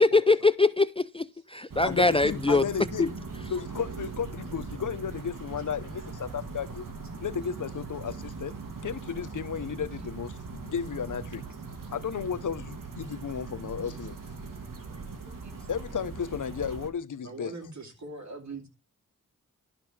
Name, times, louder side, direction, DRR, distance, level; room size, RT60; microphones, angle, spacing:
voice 1, 0.0-2.6 3.0-3.1, left 3 dB, 20° left, 0.4 m, -23 dB
sound 1, 1.7-16.9, right 4 dB, 85° right, 1.4 m, -40 dB
voice 2, 1.8-3.1 3.5-6.9 7.2-8.6 8.8-11.4 11.9-14.2 15.7-17.5, left 7 dB, 70° left, 0.7 m, -34 dB
voice 3, 17.2-18.7, right 3 dB, 60° right, 2.6 m, -42 dB
12.0 x 4.1 x 6.0 m
cardioid pair, 50°, 32 cm